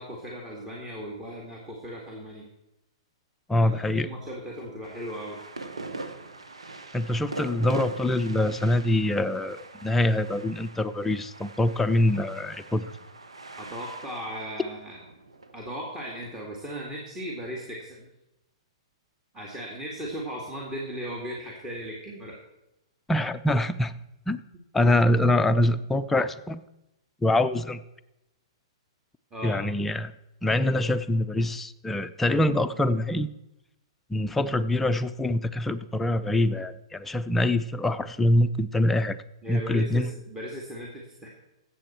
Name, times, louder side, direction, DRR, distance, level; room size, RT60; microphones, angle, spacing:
voice 1, 0.0-2.5 3.6-5.4 13.6-15.0 15.5-18.1 19.3-22.4 29.3-29.6 39.4-41.3, equal, 15° right, -2 dB, 2.0 m, -37 dB
voice 2, 3.5-4.1 6.9-12.9 23.1-23.9 24.3-24.4 24.7-26.6 27.2-27.8 29.4-30.1 30.4-33.3 34.1-39.2 39.5-40.1, left 1 dB, 10° left, 9 dB, 0.5 m, -24 dB
sound 1, 4.8-16.3, right 3 dB, 85° right, 1.1 m, -42 dB
14.5 x 7.8 x 4.4 m, 0.90 s
hypercardioid pair, 115°, 3 cm